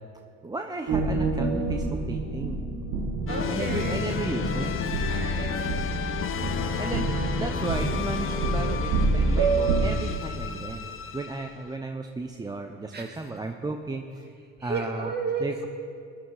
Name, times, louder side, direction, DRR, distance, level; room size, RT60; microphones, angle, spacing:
voice 1, 0.4-2.6 3.5-4.7 6.8-14.3 14.6-15.1 15.4-15.5, right 3 dB, 10° right, 5 dB, 0.7 m, -34 dB
sound 1, 0.9-9.9, right 3 dB, 50° right, 2.8 m, -27 dB
sound 2, 3.3-11.7, left 7 dB, 35° left, 1.1 m, -32 dB
voice 2, 3.3-4.0 5.0-5.6 12.9-13.3 14.6-15.7, right 4 dB, 25° right, 3 dB, 2.2 m, -33 dB
19.5 x 11.5 x 3.9 m, 2.3 s
hypercardioid pair, 70°, 37 cm